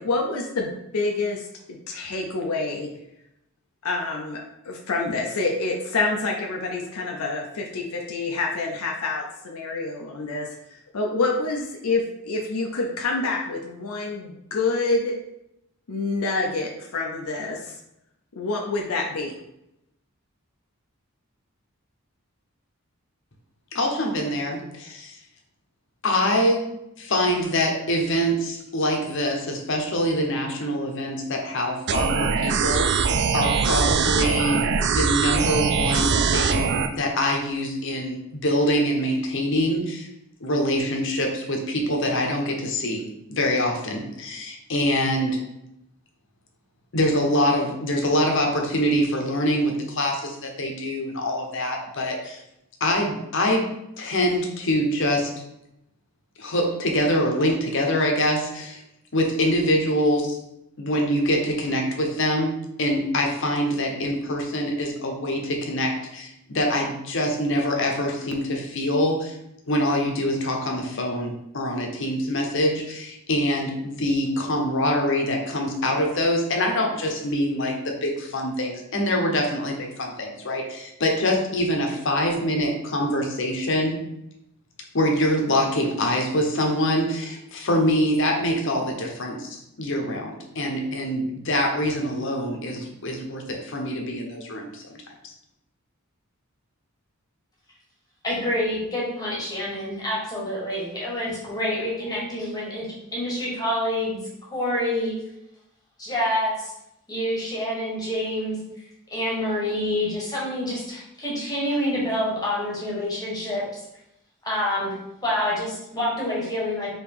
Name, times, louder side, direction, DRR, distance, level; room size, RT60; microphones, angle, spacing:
voice 1, 0.0-2.9 3.8-10.5 10.9-15.1 15.9-17.7 18.4-19.3, left 3 dB, 80° left, 1 dB, 0.6 m, -27 dB
voice 2, 23.7-25.2 26.0-26.7 27.0-40.1 40.4-45.4 46.9-52.4 52.8-55.3 56.4-58.8 59.1-60.4 60.8-69.4 69.7-84.0 84.9-95.3, left 1 dB, 60° left, 1 dB, 0.8 m, -24 dB
sound 1, 31.9-36.9, right 6 dB, 50° right, 0.3 m, -22 dB
voice 3, 98.2-102.9 103.1-104.2 104.5-105.1 106.0-106.7 107.1-108.6 109.1-113.8 114.4-114.9 115.2-116.9, left 1 dB, 15° left, -5 dB, 1.2 m, -27 dB
4.7 x 3.0 x 3.5 m, 0.82 s
head